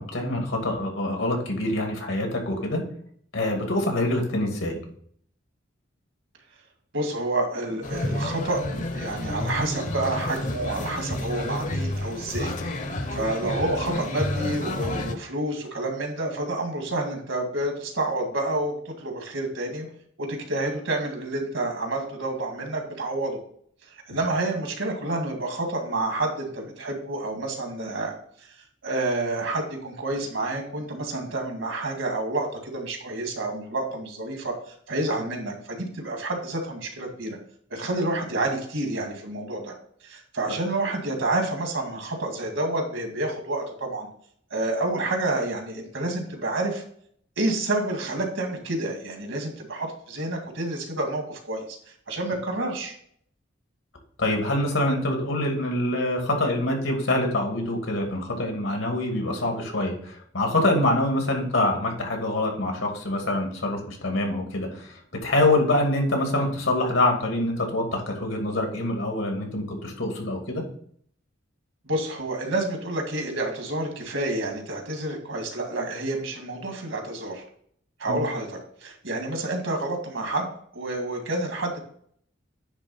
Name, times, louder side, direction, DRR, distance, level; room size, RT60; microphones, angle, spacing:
voice 1, 0.0-2.8 3.3-4.8 54.2-65.0 65.2-70.6 78.1-78.2, left 1 dB, 85° left, 2 dB, 2.5 m, -25 dB
voice 2, 6.9-12.5 13.1-19.9 20.2-23.4 24.1-28.1 28.8-34.5 34.9-37.4 37.7-39.7 40.0-44.1 44.5-46.8 47.4-51.6 52.1-53.0 71.9-77.4 78.0-81.8, right 2 dB, 75° right, 3 dB, 2.1 m, -29 dB
sound 1, 7.8-15.2, left 1 dB, 40° left, 0.8 m, -30 dB
9.7 x 3.6 x 5.5 m, 0.62 s
head